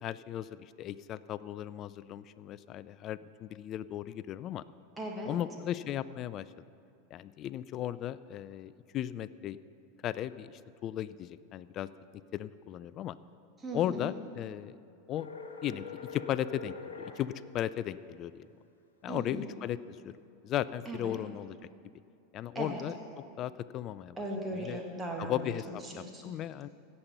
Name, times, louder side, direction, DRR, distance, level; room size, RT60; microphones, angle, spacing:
voice 1, 0.0-4.6 5.3-6.5 7.1-9.6 10.0-11.9 12.3-13.2 13.7-14.8 15.1-15.3 15.6-15.8 16.1-18.5 19.0-20.2 20.4-21.6 22.3-24.2 24.5-24.8 25.2-26.7, left 11 dB, 40° left, 17 dB, 0.3 m, -36 dB
voice 2, 5.0-5.4 13.6-14.1 19.1-19.5 20.8-21.2 22.5-22.8 24.2-25.5 25.8-26.3, right 1 dB, 15° right, 0 dB, 1.6 m, -38 dB
sound 1, 15.2-17.2, left 3 dB, 80° left, 1.0 m, -43 dB
16.5 x 5.5 x 5.7 m, 2.5 s
figure-of-eight pair, 90°, 0 cm